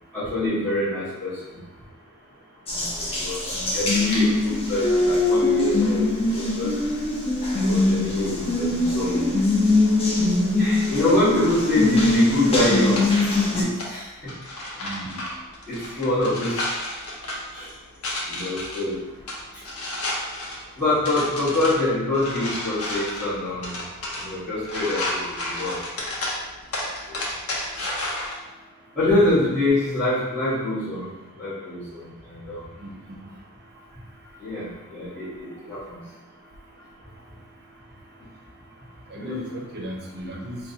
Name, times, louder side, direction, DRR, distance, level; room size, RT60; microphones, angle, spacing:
voice 1, 0.1-1.4 2.7-6.7 7.6-9.3 10.5-13.1 13.4-14.1 15.7-16.7 17.5-17.7 18.3-19.0 20.8-23.8 24.1-25.7 27.1-27.2 28.9-31.1 31.3-32.0 32.3-32.6 34.4-36.0 39.1-39.2, left 1 dB, 5° left, -15 dB, 1.5 m, -25 dB
Water tap faucet, 2.7-13.6, left 2 dB, 25° left, 0.7 m, -22 dB
voice 2, 3.5-3.8 14.8-15.2 32.8-32.9 39.2-40.6, equal, 50° right, 0 dB, 0.6 m, -35 dB
sound 1, 11.4-28.3, left 1 dB, 75° left, 0.8 m, -33 dB
4.6 x 2.2 x 2.7 m, 1.1 s
head